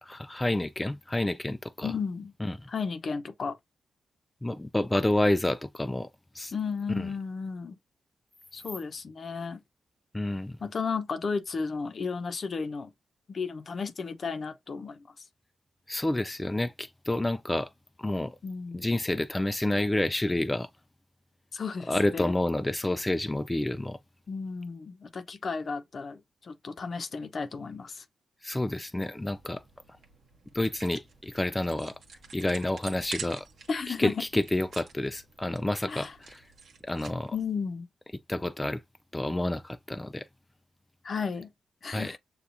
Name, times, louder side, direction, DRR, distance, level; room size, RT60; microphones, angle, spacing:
voice 1, 0.0-1.9 2.4-2.6 4.4-6.1 6.3-6.5 6.9-7.0 10.1-10.6 15.9-17.7 18.0-18.4 18.7-20.7 21.9-24.0 28.4-29.6 30.5-31.9 32.3-33.5 33.9-36.4 36.8-37.4 38.3-38.8 39.1-40.3 41.9-42.2, left 1 dB, 15° left, 0.3 m, -29 dB
voice 2, 1.8-2.3 2.7-3.6 6.5-7.8 8.5-9.6 10.6-12.9 13.3-15.1 18.4-18.9 21.5-22.4 24.3-28.0 33.7-34.2 35.9-36.1 37.3-37.9 41.0-41.5 41.8-42.2, left 5 dB, 55° left, 0.7 m, -34 dB
sound 1, 29.3-37.5, right 6 dB, 75° right, 1.1 m, -48 dB
6.9 x 2.3 x 2.6 m
cardioid pair, 65°, 0 cm